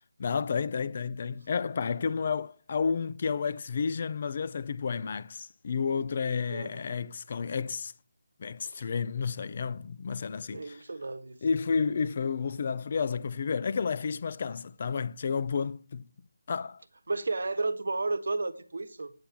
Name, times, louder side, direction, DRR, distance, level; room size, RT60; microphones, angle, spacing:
voice 1, 0.2-7.9 8.4-10.8 11.4-16.1 16.5-16.8, left 5 dB, 40° left, 0.5 m, -31 dB
voice 2, 6.5-6.8 8.6-8.8 10.5-11.4 17.1-19.1, right 3 dB, 70° right, 1.1 m, -32 dB
8.6 x 5.8 x 6.8 m
figure-of-eight pair, 165°, 0 cm